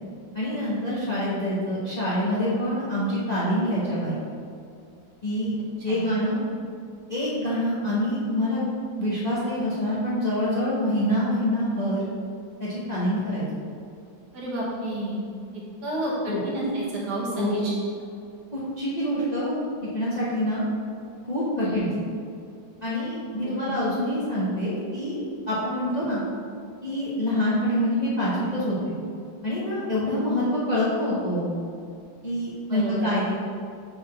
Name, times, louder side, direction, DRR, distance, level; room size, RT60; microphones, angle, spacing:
voice 1, 0.3-4.2 5.2-5.5 5.8-6.4 7.1-8.7 9.0-12.0 12.6-13.5 16.2-16.4 17.3-17.6 18.5-19.5 19.9-20.6 21.3-21.9 22.8-26.2 26.8-28.9 29.4-31.5 32.2-33.3, left 1 dB, 30° left, -8 dB, 0.9 m, -26 dB
voice 2, 14.3-15.2 15.5-17.7 21.6-21.9 23.4-23.7 27.3-27.4 32.7-33.1, right 1 dB, 60° right, -5 dB, 1.8 m, -30 dB
5.4 x 4.0 x 6.0 m, 2.3 s
omnidirectional pair, 2.1 m